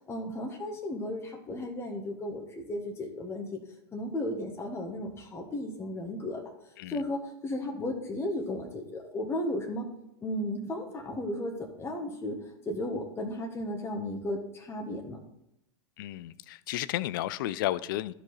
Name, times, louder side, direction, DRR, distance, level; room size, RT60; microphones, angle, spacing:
voice 1, 0.1-3.6 3.9-6.4 6.9-9.9 10.2-15.2, left 1 dB, 20° left, 2 dB, 1.4 m, -34 dB
voice 2, 16.0-18.1, left 14 dB, 50° left, 19 dB, 0.4 m, -32 dB
13.5 x 5.0 x 4.0 m, 0.83 s
figure-of-eight pair, 90°, 14 cm